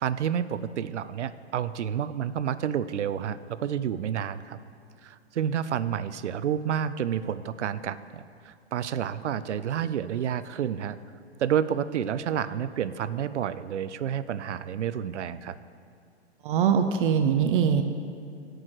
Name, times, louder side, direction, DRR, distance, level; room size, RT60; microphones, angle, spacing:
voice 1, 0.0-4.6 5.0-11.0 11.4-15.6, right 9 dB, 90° right, 14 dB, 0.6 m, -30 dB
voice 2, 16.4-17.8, right 7 dB, 50° right, 7 dB, 0.7 m, -22 dB
16.5 x 6.4 x 4.7 m, 2.3 s
hypercardioid pair, 140°, 34 cm